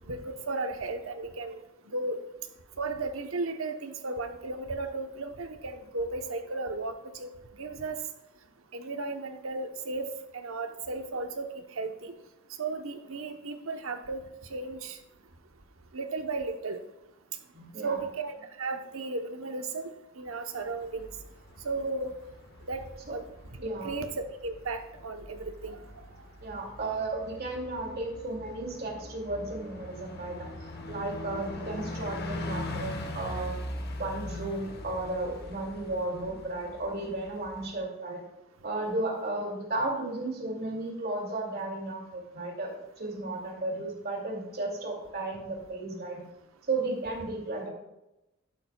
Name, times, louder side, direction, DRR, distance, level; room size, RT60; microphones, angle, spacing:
voice 1, 0.1-1.6 1.9-2.2 2.8-7.3 7.6-8.0 8.7-10.1 10.3-11.5 11.8-12.1 12.6-14.2 14.5-15.0 15.9-16.8 17.8-21.1 21.6-22.1 22.7-22.8 23.1-23.2 23.6-24.1 24.4-25.8, right 3 dB, 85° right, 7 dB, 1.0 m, -35 dB
voice 2, 17.5-18.0 23.1-23.2 23.6-24.0 26.4-33.6 34.0-38.2 38.6-42.7 43.0-46.3 46.7-47.7, right 2 dB, 50° right, 0 dB, 2.5 m, -34 dB
Bus, 20.7-37.7, left 2 dB, 50° left, 1.3 m, -42 dB
11.5 x 11.5 x 2.3 m, 0.94 s
head